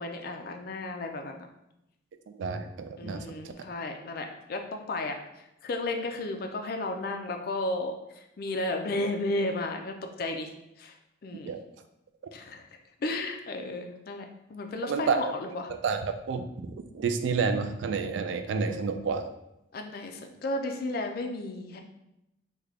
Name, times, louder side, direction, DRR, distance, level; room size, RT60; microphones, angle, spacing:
voice 1, 0.0-1.5 3.0-10.5 10.8-11.0 11.2-11.5 12.3-12.7 13.0-15.7 19.7-21.8, left 2 dB, 50° left, 5 dB, 0.3 m, -33 dB
voice 2, 2.3-3.3 11.4-11.6 14.9-15.3 15.8-19.3, right 5 dB, 70° right, 8 dB, 0.3 m, -29 dB
3.3 x 2.2 x 3.5 m, 0.87 s
head